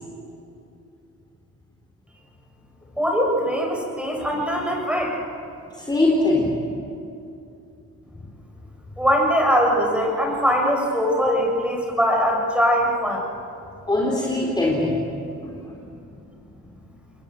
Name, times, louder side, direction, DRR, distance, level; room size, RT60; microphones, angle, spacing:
voice 1, 3.0-5.2 9.0-13.2, equal, 5° right, 0 dB, 7.2 m, -21 dB
voice 2, 5.7-6.5 13.9-15.0 15.4-15.6, left 2 dB, 15° left, -3 dB, 4.2 m, -21 dB
29.0 x 21.5 x 7.8 m, 2.6 s
cardioid pair, 90°, 30 cm